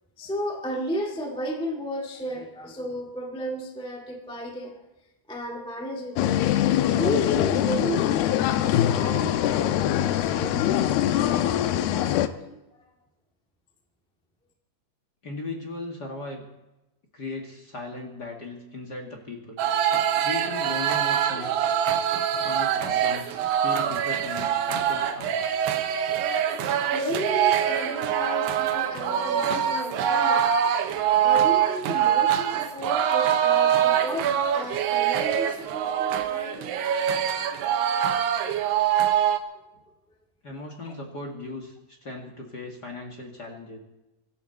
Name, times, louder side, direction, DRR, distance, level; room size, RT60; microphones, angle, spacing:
voice 1, 0.2-4.8 5.3-6.3 6.9-12.6 26.9-30.5 31.2-36.7 39.5-39.6 40.8-40.9, equal, 5° left, 0 dB, 0.8 m, -34 dB
sound 1, 6.2-12.3, left 11 dB, 85° left, 2.6 m, -23 dB
voice 2, 15.2-16.5 17.1-19.6 20.2-21.8 22.4-25.4 40.4-41.7 42.0-43.8, left 2 dB, 35° left, 1 dB, 1.9 m, -37 dB
sound 2, 19.6-39.4, right 9 dB, 85° right, 3.2 m, -24 dB
25.0 x 12.5 x 4.1 m, 0.98 s
omnidirectional pair, 4.6 m